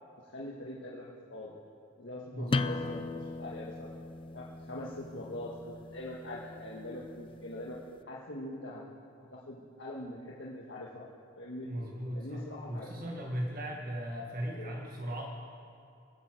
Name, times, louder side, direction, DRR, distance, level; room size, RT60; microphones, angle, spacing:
voice 1, 0.3-1.5 2.0-3.9 4.3-7.8 8.1-8.8 9.3-11.1 11.3-11.7 12.1-13.1 14.5-14.7, left 1 dB, 70° left, -5 dB, 1.6 m, -43 dB
voice 2, 2.3-2.7 11.6-15.2, equal, 50° right, -1 dB, 1.7 m, -38 dB
sound 1, 2.5-7.9, left 3 dB, 25° left, 0.4 m, -38 dB
18.5 x 9.7 x 7.6 m, 2.7 s
head